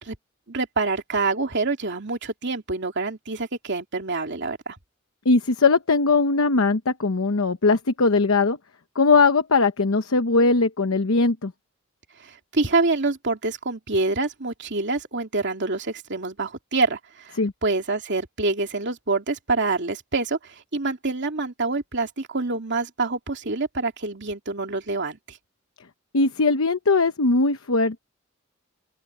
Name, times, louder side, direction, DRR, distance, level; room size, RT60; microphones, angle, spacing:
voice 1, 0.5-4.8 12.2-25.4, right 3 dB, 60° right, 2.8 m, -26 dB
voice 2, 5.2-8.6 8.9-11.5 17.4-17.5 26.1-28.0, left 3 dB, 85° left, 0.9 m, -20 dB
open air
head